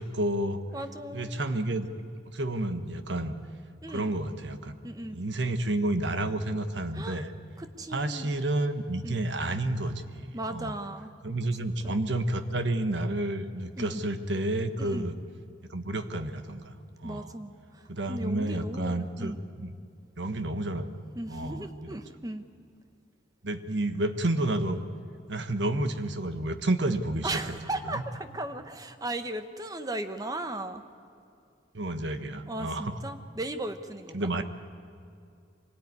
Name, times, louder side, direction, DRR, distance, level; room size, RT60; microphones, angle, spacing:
voice 1, 0.0-0.6 1.1-1.9 2.3-3.4 3.9-4.8 5.1-7.3 7.9-10.7 11.2-15.1 15.7-16.7 17.0-17.3 17.9-19.7 20.2-20.9 21.3-22.0 23.4-24.8 25.3-27.3 27.8-27.9 31.7-33.0 34.1-34.4, right 1 dB, 70° right, 8 dB, 1.3 m, -30 dB
voice 2, 0.7-1.5 3.8-4.1 4.8-5.2 6.9-7.2 7.6-8.3 9.0-9.2 10.3-11.1 11.6-11.9 13.8-14.0 14.8-15.1 17.0-19.4 21.1-22.4 27.2-30.8 32.5-34.4, right 1 dB, 20° right, 8 dB, 1.0 m, -37 dB
24.5 x 18.0 x 9.7 m, 2.5 s
head